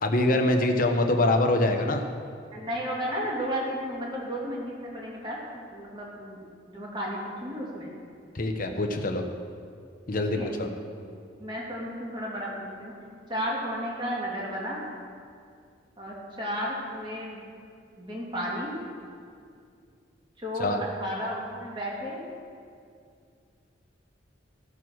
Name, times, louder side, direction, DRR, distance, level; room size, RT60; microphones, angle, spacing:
voice 1, 0.0-2.0 8.3-9.2 10.1-10.7 20.6-20.8, left 2 dB, 50° left, 4 dB, 1.0 m, -24 dB
voice 2, 2.5-5.4 5.7-6.4 6.7-8.0 10.1-10.6 10.9-11.1 11.4-12.9 13.3-14.8 16.0-17.5 18.0-18.7 20.4-22.2, equal, 25° right, -4 dB, 2.5 m, -33 dB
14.0 x 6.8 x 6.2 m, 2.3 s
head